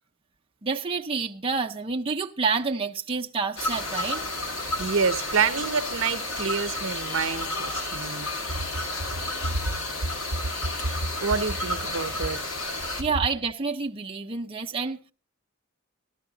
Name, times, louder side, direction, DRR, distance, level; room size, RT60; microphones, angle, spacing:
voice 1, 0.6-4.2 13.0-15.0, right 4 dB, 25° right, 0.6 m, -28 dB
sound 1, 3.6-13.0, left 2 dB, 80° left, 2.3 m, -31 dB
voice 2, 4.8-8.3 11.2-12.4, right 5 dB, 70° right, 0.8 m, -27 dB
14.0 x 12.5 x 3.9 m
head